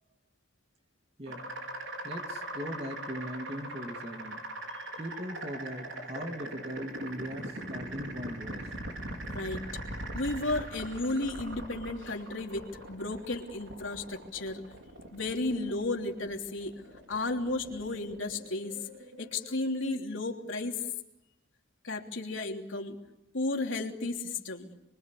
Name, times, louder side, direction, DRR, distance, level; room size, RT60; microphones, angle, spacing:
sound 1, 1.3-20.0, right 1 dB, 70° right, 4.7 m, -41 dB
voice 1, 2.0-4.4 5.0-8.7, equal, 30° right, 3 dB, 2.4 m, -39 dB
voice 2, 9.3-9.8 10.1-14.6 15.1-16.8 17.1-18.8 19.2-20.8 21.8-23.0 23.3-24.7, left 2 dB, 75° left, 2 dB, 3.1 m, -33 dB
27.5 x 24.0 x 8.5 m, 0.88 s
head